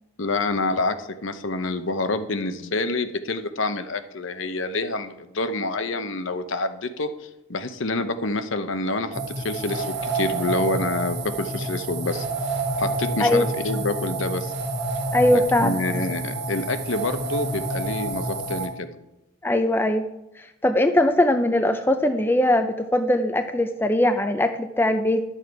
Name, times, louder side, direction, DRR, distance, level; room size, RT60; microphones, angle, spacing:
voice 1, 0.2-12.2 12.8-14.5 15.3-19.0, left 2 dB, 60° left, 9 dB, 0.8 m, -27 dB
sound 1, 9.1-18.7, right 2 dB, 50° right, 1.8 m, -28 dB
voice 2, 15.1-15.8 19.4-20.0 20.6-25.2, left 1 dB, 10° left, 7 dB, 0.4 m, -20 dB
11.5 x 7.4 x 4.6 m, 0.94 s
head